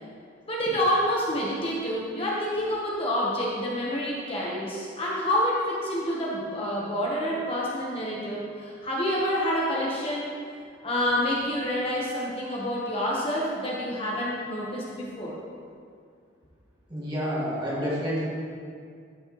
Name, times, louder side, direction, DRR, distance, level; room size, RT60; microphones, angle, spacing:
voice 1, 0.5-10.4 10.8-15.4, equal, 30° left, -5 dB, 1.1 m, -28 dB
voice 2, 16.9-18.2, equal, 25° right, -7 dB, 2.0 m, -29 dB
12.5 x 6.3 x 3.1 m, 2.2 s
head